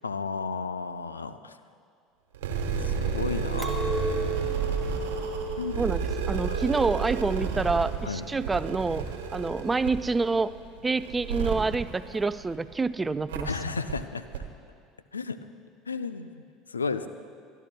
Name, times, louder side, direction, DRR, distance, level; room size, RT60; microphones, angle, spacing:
voice 1, 0.0-1.6 2.8-3.8 5.6-5.8 6.5-6.7 8.0-8.2 13.4-14.4 15.1-15.4 15.9-16.4 16.7-17.1, left 4 dB, 90° left, 12 dB, 0.4 m, -33 dB
sound 1, 2.3-12.7 13.3-13.4 13.9-14.0 14.3-14.4, right 6 dB, 75° right, 1.1 m, -31 dB
Chink clink, 3.6-9.0, right 2 dB, ahead, 1.9 m, -36 dB
voice 2, 6.3-9.1 9.3-10.5 10.8-13.7, right 3 dB, 20° right, 15 dB, 0.4 m, -27 dB
24.0 x 12.0 x 2.2 m, 2.2 s
hypercardioid pair, 70°, 0 cm